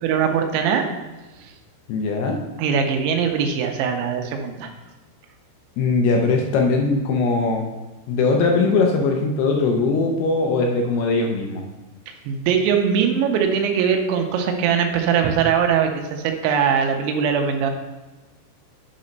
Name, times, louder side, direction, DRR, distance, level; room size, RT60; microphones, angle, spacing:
voice 1, 0.0-0.9 1.4-1.5 2.6-4.7 12.3-17.7, right 7 dB, 85° right, 4 dB, 3.2 m, -21 dB
voice 2, 1.9-2.4 5.8-7.7 8.1-11.6, left 3 dB, 75° left, 1 dB, 2.5 m, -20 dB
8.3 x 4.3 x 5.2 m, 1.1 s
omnidirectional pair, 5.2 m